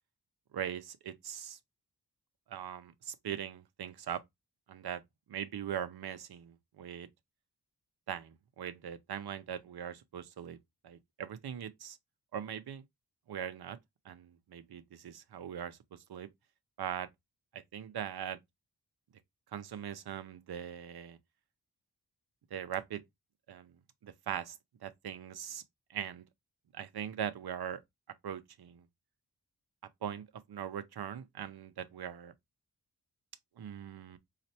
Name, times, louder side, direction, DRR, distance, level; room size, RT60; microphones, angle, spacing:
voice 1, 0.5-1.6 2.5-4.2 4.7-5.0 5.3-7.1 8.1-10.6 10.8-12.0 12.3-12.8 13.3-13.8 14.0-16.3 16.8-17.1 17.5-18.4 19.5-21.2 22.5-23.0 23.5-23.7 24.0-24.6 24.8-25.6 25.9-26.2 26.7-27.8 28.2-28.8 30.0-30.2 30.5-32.3 33.6-34.2, right 9 dB, 80° right, 0.6 m, -40 dB
4.3 x 2.5 x 2.7 m
wide cardioid pair, 160°, 38 cm